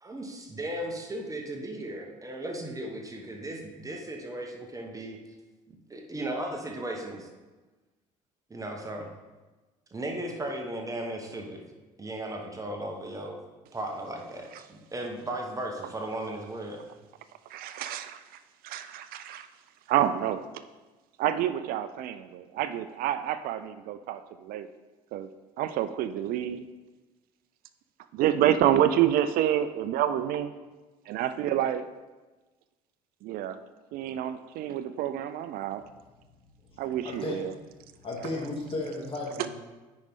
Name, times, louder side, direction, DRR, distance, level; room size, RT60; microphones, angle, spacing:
voice 1, 0.0-5.2 5.9-7.3 8.5-9.1 9.9-11.6 12.0-13.4 13.7-16.8, right 1 dB, 20° right, 2 dB, 1.2 m, -36 dB
voice 2, 17.5-18.2 18.6-19.5 19.9-20.4 21.2-24.7 25.1-25.3 25.6-26.6 28.1-30.5 31.1-31.8 33.2-33.6 33.9-35.8 36.8-37.5 39.4-39.5, right 11 dB, 65° right, 12 dB, 0.4 m, -28 dB
voice 3, 37.0-37.4 38.0-39.5, left 2 dB, 35° left, -2 dB, 2.4 m, -34 dB
9.2 x 5.3 x 3.7 m, 1.2 s
supercardioid pair, 70°, 16 cm